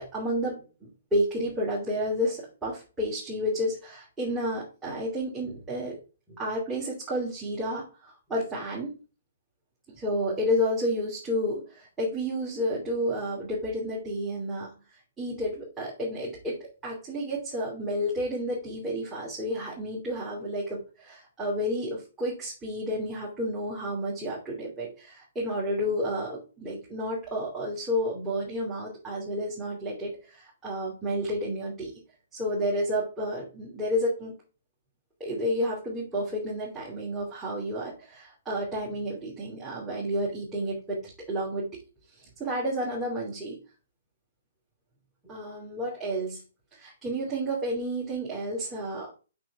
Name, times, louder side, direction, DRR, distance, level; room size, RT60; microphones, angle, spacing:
voice 1, 0.0-6.0 6.3-8.9 9.9-14.8 15.2-31.9 32.3-34.3 35.2-41.8 42.2-43.6 45.2-46.4 46.7-49.1, equal, 10° right, -7 dB, 2.9 m, -31 dB
6.4 x 6.1 x 3.6 m, 0.34 s
hypercardioid pair, 130°, 0 cm